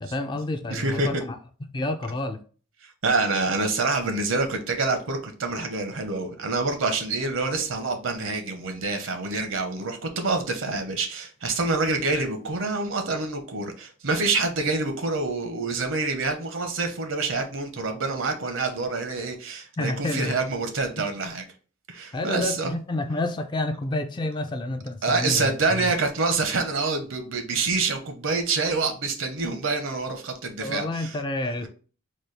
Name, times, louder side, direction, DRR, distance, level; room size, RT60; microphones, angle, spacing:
voice 1, 0.0-1.4 1.7-2.4 19.8-20.4 21.0-21.1 22.1-25.9 30.6-31.7, left 2 dB, 20° left, 0.3 m, -29 dB
voice 2, 0.7-1.1 3.0-21.4 21.9-22.7 25.0-31.2, right 3 dB, 70° right, 0.7 m, -26 dB
4.0 x 2.3 x 3.2 m
head